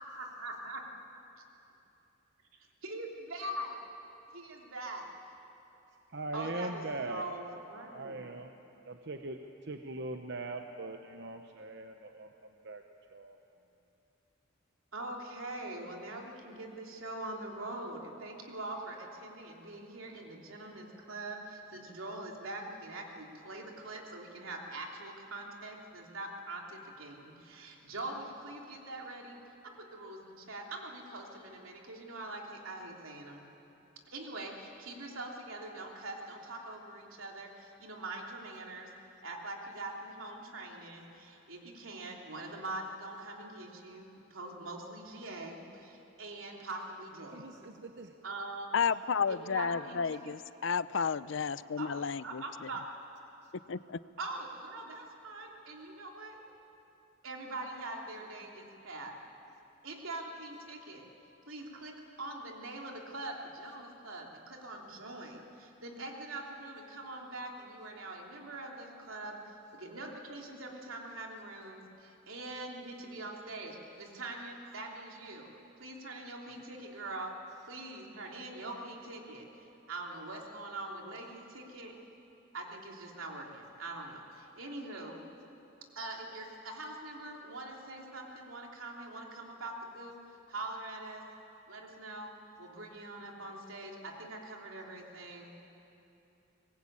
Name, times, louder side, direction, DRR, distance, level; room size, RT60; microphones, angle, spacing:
voice 1, 0.1-0.8 2.8-3.8 4.3-5.1 6.3-7.4 7.7-8.2 14.9-29.4 29.6-33.4 34.1-38.9 39.2-47.5 48.2-48.9 49.3-50.0 51.8-51.9 52.2-52.8 54.2-56.4 57.2-59.2 59.8-61.0 61.5-75.5 75.8-77.3 77.6-81.9 82.5-85.2 85.9-90.2 90.5-91.2 91.7-92.3 92.6-95.5, right 2 dB, 75° right, 0 dB, 3.2 m, -43 dB
voice 2, 6.1-7.2 7.9-8.5 8.9-12.8 13.1-13.4 47.3-48.2 53.4-53.5, right 2 dB, 55° right, 5 dB, 0.9 m, -41 dB
voice 3, 48.7-52.4 53.7-54.0, left 6 dB, 60° left, 17 dB, 0.5 m, -32 dB
24.0 x 19.5 x 8.7 m, 2.9 s
head